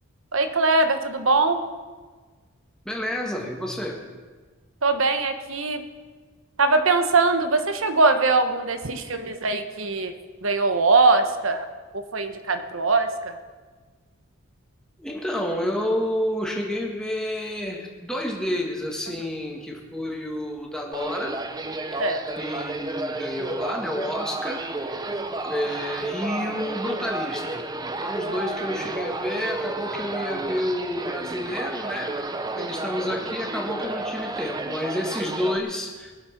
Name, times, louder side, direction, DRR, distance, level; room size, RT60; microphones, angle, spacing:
voice 1, 0.3-1.6 4.8-5.8 6.6-10.1 10.4-11.7 11.9-13.4 22.0-22.3 28.2-28.3 32.6-32.7, right 3 dB, 70° right, 8 dB, 1.2 m, -22 dB
voice 2, 2.9-4.0 15.0-21.4 22.4-25.1 25.4-27.7 28.0-32.2 32.5-36.1, left 1 dB, 5° left, -1 dB, 1.7 m, -30 dB
sound 1, 20.9-35.6, right 2 dB, 20° right, 0.7 m, -31 dB
21.0 x 7.4 x 5.9 m, 1.4 s
head